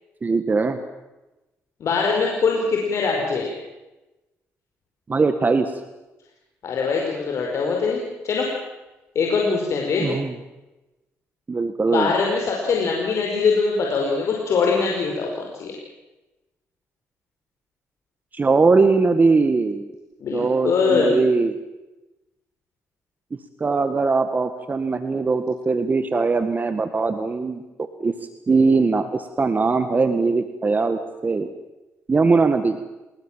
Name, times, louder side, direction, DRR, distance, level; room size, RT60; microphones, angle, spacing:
voice 1, 0.2-0.8 5.1-5.8 10.0-10.3 11.5-12.1 18.3-19.9 20.3-21.5 23.6-27.6 28.0-28.1 28.5-31.5 32.1-32.8, right 4 dB, 30° right, 9 dB, 1.7 m, -20 dB
voice 2, 1.8-3.5 6.6-8.5 9.1-10.2 11.9-15.7 20.2-21.2, left 4 dB, 60° left, 0 dB, 5.1 m, -22 dB
28.5 x 20.0 x 7.5 m, 1.0 s
cardioid pair, 80°, 5 cm